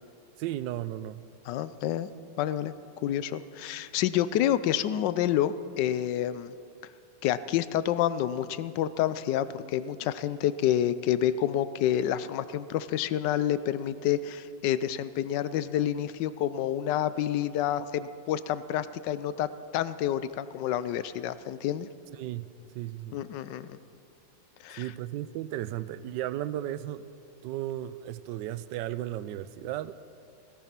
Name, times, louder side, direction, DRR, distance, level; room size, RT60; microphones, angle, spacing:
voice 1, 0.4-1.2 22.1-22.5 22.7-23.2 24.7-27.0 27.4-29.9, right 13 dB, 75° right, 15 dB, 1.1 m, -35 dB
voice 2, 1.5-2.1 2.4-2.7 3.0-6.5 7.2-21.9 23.1-23.8 24.6-24.9, left 11 dB, 70° left, 14 dB, 1.2 m, -28 dB
16.5 x 15.0 x 5.9 m, 2.4 s
omnidirectional pair, 2.2 m